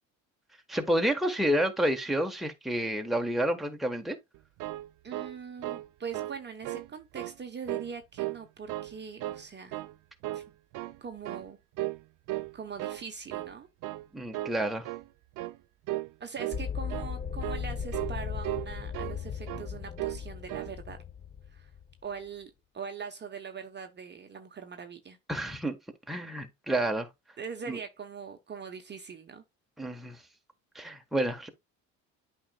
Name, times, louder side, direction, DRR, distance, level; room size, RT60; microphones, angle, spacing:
voice 1, 0.7-4.2 14.1-14.9 25.3-25.8 26.1-27.1 27.7-27.8 29.8-30.2 30.7-31.5, right 1 dB, ahead, 1.2 m, -29 dB
sound 1, 4.3-5.9 6.1-6.4 6.6-7.3 7.7-8.4 8.7-9.4 9.7-9.9 10.2-11.0 11.2-11.5 11.8-12.0 12.3-13.0 13.3-13.5 13.8-14.1 14.3-14.6 14.8-15.1 15.4-15.6 15.9-16.1 16.4-16.6 16.9-17.1 17.4-17.6 17.9-18.2 18.4-19.2 19.5-19.7 20.0-20.2 20.5-20.7, right 17 dB, 60° right, 0.6 m, -35 dB
voice 2, 5.0-9.8 10.3-10.4 11.0-11.6 12.5-13.7 16.2-21.0 21.5-21.7 22.0-25.2 27.4-29.4, right 6 dB, 30° right, 0.9 m, -42 dB
sound 2, 16.5-21.9, left 7 dB, 20° left, 0.6 m, -37 dB
8.6 x 5.2 x 2.3 m
supercardioid pair, 90°, 36 cm